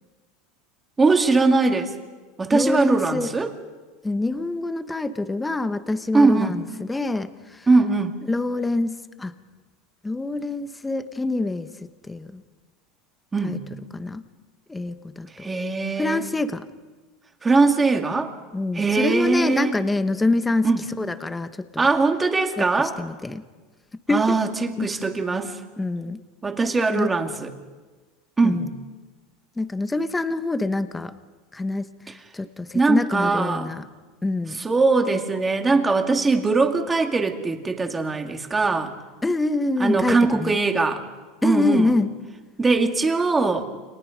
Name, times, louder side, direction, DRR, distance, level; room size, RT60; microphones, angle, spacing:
voice 1, 1.0-1.9 2.4-3.5 6.1-6.6 7.7-8.2 13.3-13.6 15.4-16.2 17.4-18.3 18.7-19.8 20.6-20.9 21.8-23.0 24.1-25.6 26.4-27.5 28.4-28.7 32.7-33.7 34.5-38.9 39.8-41.0 41.4-42.0 42.6-43.6, right 3 dB, 15° right, 4 dB, 2.4 m, -21 dB
voice 2, 2.5-3.3 4.0-7.7 8.2-9.3 10.0-11.7 12.1-12.4 13.4-13.6 13.9-14.2 14.7-15.5 16.0-16.6 18.5-20.7 21.0-21.9 22.6-23.4 24.1-24.4 24.8-24.9 25.8-26.2 26.9-27.1 28.4-28.7 29.6-31.1 31.5-31.9 32.3-33.8 34.2-34.6 39.2-40.6 41.4-42.1, left 2 dB, 10° left, 9 dB, 1.2 m, -25 dB
30.0 x 26.5 x 5.3 m, 1.3 s
supercardioid pair, 135°, 0 cm